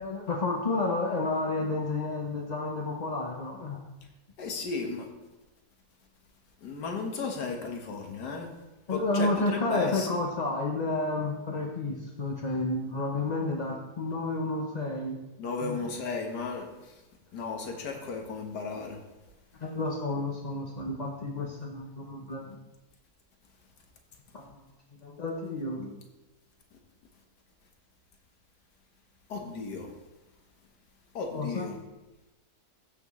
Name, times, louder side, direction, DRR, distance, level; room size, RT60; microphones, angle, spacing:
voice 1, 0.0-3.8 8.9-15.2 15.6-15.8 19.6-22.6 24.3-24.6 25.0-25.9 31.3-31.8, left 2 dB, 40° left, -1 dB, 0.6 m, -31 dB
voice 2, 4.4-5.1 6.6-8.5 8.9-10.1 15.4-16.9 17.3-19.0 21.4-21.5 29.3-29.9 31.1-31.8, left 4 dB, 90° left, 3 dB, 1.8 m, -34 dB
15.0 x 6.0 x 3.1 m, 1.0 s
omnidirectional pair, 1.7 m